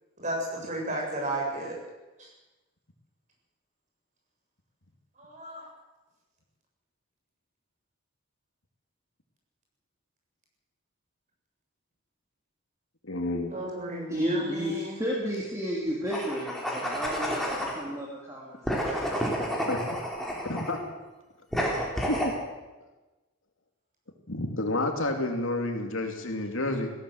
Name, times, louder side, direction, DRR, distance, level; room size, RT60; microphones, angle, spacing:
voice 1, 0.2-1.8 2.2-2.3 5.2-5.7 13.5-15.0, right 1 dB, 35° right, -1 dB, 7.6 m, -33 dB
voice 2, 13.0-13.6 19.7-20.0 20.5-20.8 22.1-22.3 24.3-26.9, left 2 dB, 65° left, 3 dB, 3.0 m, -30 dB
voice 3, 14.1-19.0, equal, 15° right, -4 dB, 3.5 m, -32 dB
sound 1, 16.1-17.8 18.6-20.8 21.5-22.3, equal, ahead, 4.2 m, -30 dB
20.0 x 16.5 x 8.0 m, 1.2 s
head